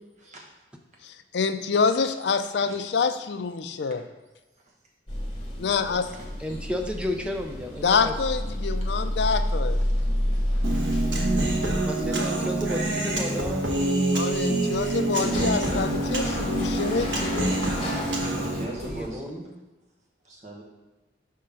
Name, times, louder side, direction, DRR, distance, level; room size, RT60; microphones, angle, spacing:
voice 1, 1.0-4.0 5.6-6.1 7.8-9.8 14.1-17.6, left 5 dB, 70° left, 9 dB, 0.4 m, -26 dB
voice 2, 2.7-3.1 4.6-4.7 6.0-6.2 9.7-10.0 10.7-10.8 13.6-14.1 18.3-19.5 20.2-20.6, right 1 dB, 40° right, -3 dB, 1.2 m, -41 dB
sound 1, 5.1-19.1, equal, 25° left, 1.3 m, -30 dB
voice 3, 6.4-8.1 11.8-13.6 19.0-19.3, left 1 dB, 5° right, 3 dB, 0.5 m, -32 dB
Human voice, 10.6-18.6, right 2 dB, 85° right, 1.1 m, -26 dB
5.5 x 3.7 x 5.7 m, 1.1 s
head